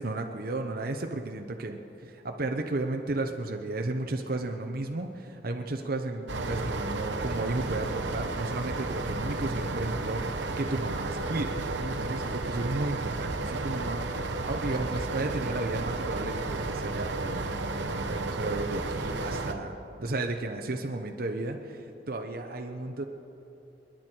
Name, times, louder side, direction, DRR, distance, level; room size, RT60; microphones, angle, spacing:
voice 1, 0.0-23.0, right 2 dB, 50° right, 4 dB, 0.9 m, -34 dB
sound 1, 6.3-19.5, right 2 dB, 75° right, 1.0 m, -32 dB
28.5 x 10.5 x 4.5 m, 2.9 s
head